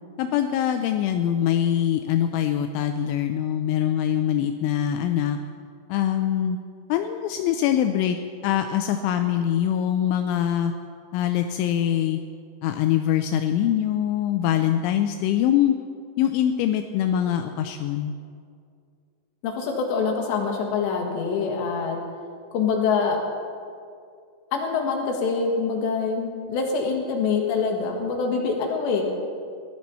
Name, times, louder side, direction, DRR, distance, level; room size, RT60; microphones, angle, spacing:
voice 1, 0.2-5.4 5.9-6.6 6.9-8.2 8.4-10.7 11.1-12.2 12.6-15.8 16.2-18.2, left 10 dB, 85° left, 6 dB, 2.8 m, -23 dB
voice 2, 19.4-22.0 22.5-23.2 24.5-29.0, left 5 dB, 70° left, 1 dB, 3.7 m, -25 dB
18.5 x 12.5 x 4.2 m, 2.2 s
omnidirectional pair, 5.8 m